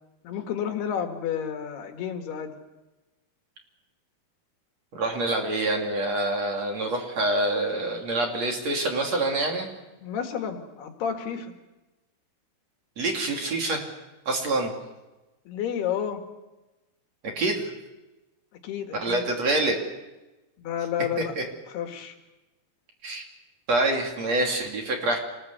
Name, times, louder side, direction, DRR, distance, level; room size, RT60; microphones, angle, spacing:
voice 1, 0.2-2.5 10.0-11.5 15.5-16.2 18.6-19.2 20.6-21.4 21.7-22.2, left 8 dB, 80° left, 5 dB, 4.0 m, -31 dB
voice 2, 4.9-9.7 13.0-13.8 14.3-14.7 17.4-17.7 19.0-19.8 21.4-21.5 23.0-23.2 23.7-25.2, right 2 dB, 45° right, 2 dB, 3.8 m, -26 dB
27.0 x 20.0 x 8.1 m, 1.1 s
omnidirectional pair, 4.6 m